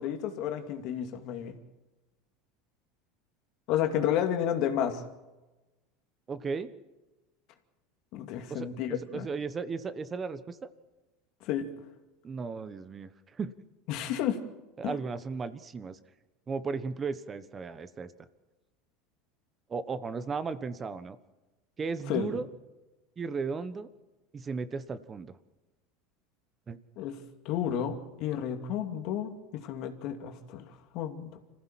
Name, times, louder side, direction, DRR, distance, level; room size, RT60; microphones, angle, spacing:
voice 1, 0.0-1.6 3.7-5.0 8.1-9.3 11.4-11.7 13.9-14.4 14.8-14.9 22.1-22.3 27.0-27.2 27.4-31.4, left 10 dB, 60° left, 6 dB, 2.5 m, -31 dB
voice 2, 6.3-6.7 8.5-10.7 12.2-13.1 13.4-13.5 14.8-16.0 16.5-18.1 19.7-21.2 21.8-22.5 23.2-23.9 24.3-25.3 26.7-26.8, right 5 dB, 30° right, 13 dB, 1.3 m, -35 dB
25.5 x 15.0 x 7.5 m, 1.1 s
hypercardioid pair, 90°, 0 cm